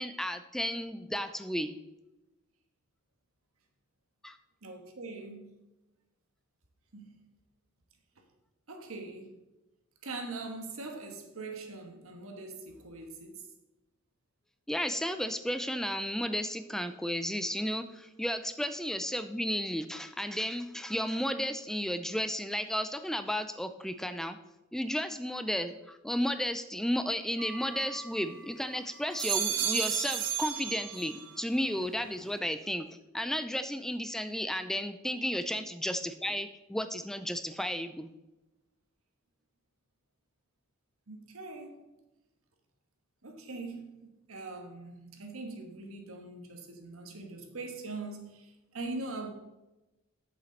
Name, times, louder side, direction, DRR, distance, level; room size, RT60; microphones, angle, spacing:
voice 1, 0.0-1.8 4.2-4.4 14.7-24.4 24.7-32.9 33.1-38.1, equal, ahead, 0.3 m, -33 dB
voice 2, 4.6-5.6 6.9-7.2 8.7-9.3 10.0-13.5 41.1-41.8 43.2-49.3, right 3 dB, 90° right, 1.4 m, -42 dB
sound 1, 27.4-28.5 29.0-31.4 31.8-32.4, right 9 dB, 60° right, 0.9 m, -34 dB
8.3 x 7.0 x 4.0 m
head